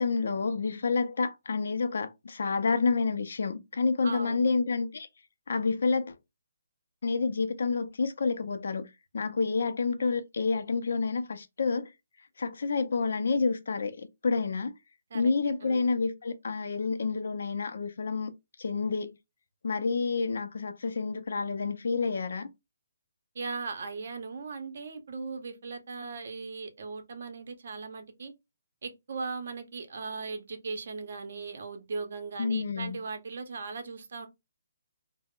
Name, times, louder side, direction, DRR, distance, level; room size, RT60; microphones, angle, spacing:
voice 1, 0.0-5.1 5.5-6.2 7.0-11.9 12.4-14.7 15.1-18.3 18.6-19.2 19.6-22.5 32.4-33.0, left 4 dB, 65° left, 0.5 m, -29 dB
voice 2, 4.0-4.5 15.1-15.3 15.6-15.9 23.3-28.3 28.8-34.3, right 4 dB, 55° right, 0.6 m, -38 dB
2.3 x 2.0 x 3.5 m
hypercardioid pair, 170°, 0 cm